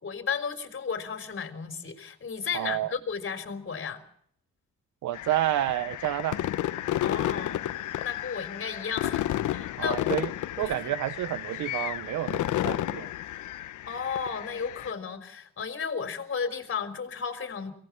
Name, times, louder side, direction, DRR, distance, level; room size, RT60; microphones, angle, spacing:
voice 1, 0.0-4.0 7.0-7.7 8.0-10.0 10.7-10.9 11.3-11.7 13.9-17.7, left 6 dB, 40° left, 4.0 m, -34 dB
voice 2, 2.5-2.9 5.0-6.4 9.8-10.3 10.6-13.1, right 13 dB, 75° right, 1.0 m, -29 dB
sound 1, 5.1-14.9, left 13 dB, 80° left, 1.1 m, -32 dB
24.0 x 18.0 x 7.3 m
cardioid pair, 90°, 30 cm